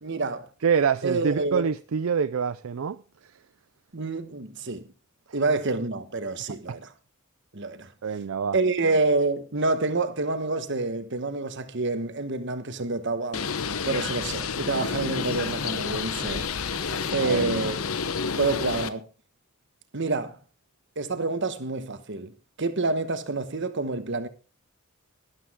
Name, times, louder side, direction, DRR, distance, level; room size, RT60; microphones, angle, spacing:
voice 1, 0.0-0.5 1.0-1.6 3.9-4.9 5.3-6.9 7.5-7.9 8.5-13.4 13.8-16.8 17.1-17.8 18.4-19.1 19.9-20.4 21.0-24.3, right 3 dB, 55° right, 1.3 m, -28 dB
voice 2, 0.6-3.0 6.7-6.8 8.0-8.5 17.1-17.7, right 6 dB, 75° right, 0.5 m, -26 dB
Bird, 13.3-18.9, left 5 dB, 85° left, 0.9 m, -30 dB
12.5 x 12.0 x 3.6 m
head